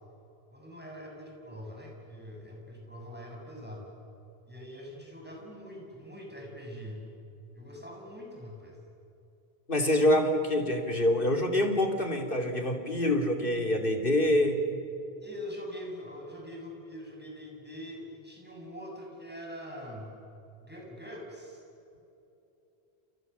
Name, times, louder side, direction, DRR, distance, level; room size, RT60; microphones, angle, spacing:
voice 1, 0.5-3.9 4.5-7.0 7.5-8.8 15.2-20.1 20.6-21.6, equal, 10° right, -1 dB, 7.2 m, -43 dB
voice 2, 9.7-14.6, left 1 dB, 55° left, 3 dB, 3.1 m, -26 dB
29.5 x 29.0 x 7.0 m, 2.9 s
omnidirectional pair, 1.1 m